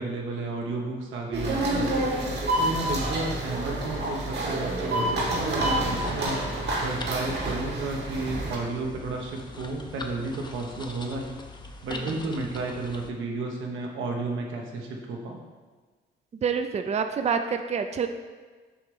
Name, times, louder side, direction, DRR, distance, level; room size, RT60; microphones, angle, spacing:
voice 1, 0.0-2.0 2.6-6.4 6.8-11.3 11.8-15.4, right 3 dB, 80° right, 1 dB, 1.2 m, -32 dB
sound 1, 1.3-8.6, right 1 dB, 60° right, 1.5 m, -28 dB
sound 2, 6.0-13.1, left 2 dB, 20° left, 0.6 m, -43 dB
voice 2, 16.4-18.1, right 6 dB, 35° right, 7 dB, 0.5 m, -27 dB
6.8 x 3.2 x 5.4 m, 1.4 s
cardioid pair, 90°, 20 cm